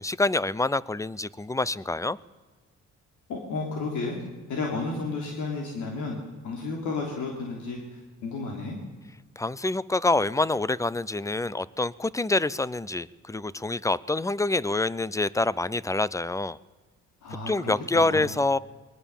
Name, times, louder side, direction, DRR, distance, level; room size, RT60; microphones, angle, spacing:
voice 1, 0.0-2.2 9.4-16.6 17.5-18.6, left 2 dB, 10° left, 20 dB, 0.6 m, -26 dB
voice 2, 3.3-4.2 4.5-8.8 17.2-18.3, left 3 dB, 80° left, 0 dB, 3.3 m, -32 dB
22.0 x 19.0 x 7.2 m, 1.3 s
cardioid pair, 90°, 30 cm